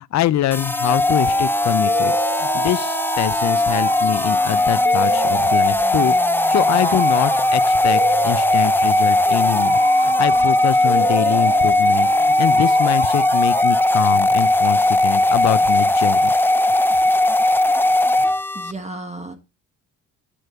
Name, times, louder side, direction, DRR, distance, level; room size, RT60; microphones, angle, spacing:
voice 1, 0.0-6.2 6.5-16.3, left 12 dB, 65° left, 0.6 m, -24 dB
sound 1, 0.5-18.7, left 2 dB, 5° left, 0.7 m, -18 dB
sound 2, 1.9-13.9, right 10 dB, 45° right, 0.5 m, -31 dB
voice 2, 18.3-19.3, right 2 dB, 20° right, 1.4 m, -34 dB
10.0 x 4.4 x 6.7 m
cardioid pair, 90°, 30 cm